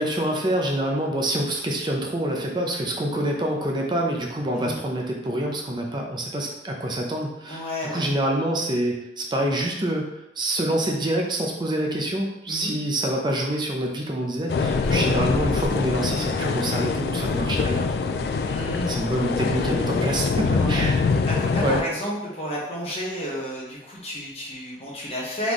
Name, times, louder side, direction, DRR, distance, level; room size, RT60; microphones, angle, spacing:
voice 1, 0.0-10.1 10.4-18.3 18.9-21.0 21.6-21.8, right 1 dB, 25° right, 0 dB, 0.6 m, -26 dB
voice 2, 7.5-8.1 12.5-12.7 14.8-15.0 18.5-18.9 20.4-20.8 21.3-25.5, equal, 35° left, -5 dB, 1.1 m, -31 dB
sound 1, 14.5-21.8, left 4 dB, 60° left, 0.3 m, -24 dB
3.9 x 3.5 x 3.1 m, 0.88 s
head